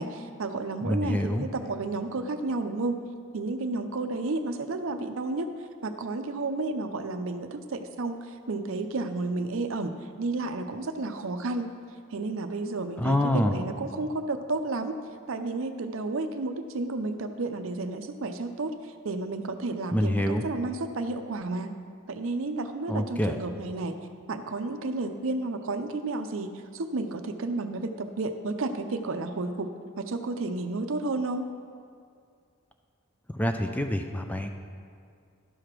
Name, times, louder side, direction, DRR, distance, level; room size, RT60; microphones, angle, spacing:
voice 1, 0.0-3.0 3.3-5.5 5.8-9.9 10.2-11.7 12.1-15.0 15.3-18.7 19.0-21.7 22.1-23.9 24.3-31.5, right 2 dB, 65° right, 8 dB, 0.6 m, -31 dB
voice 2, 0.8-1.5 13.0-13.5 19.9-20.4 22.9-23.4 33.3-34.5, left 1 dB, 5° left, 5 dB, 0.3 m, -26 dB
11.5 x 5.0 x 5.9 m, 2.2 s
head